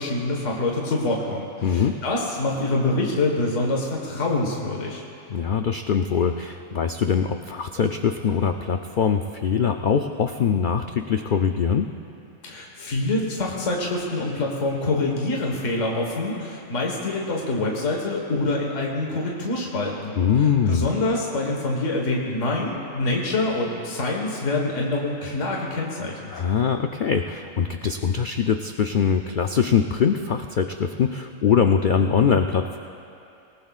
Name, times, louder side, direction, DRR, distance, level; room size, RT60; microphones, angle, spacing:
voice 1, 0.0-5.0 12.4-26.3, left 2 dB, 60° left, -1 dB, 1.8 m, -26 dB
voice 2, 1.6-2.0 5.3-11.9 20.2-20.9 26.3-32.8, left 7 dB, 90° left, 5 dB, 0.4 m, -22 dB
25.5 x 18.5 x 2.4 m, 2.6 s
omnidirectional pair, 1.5 m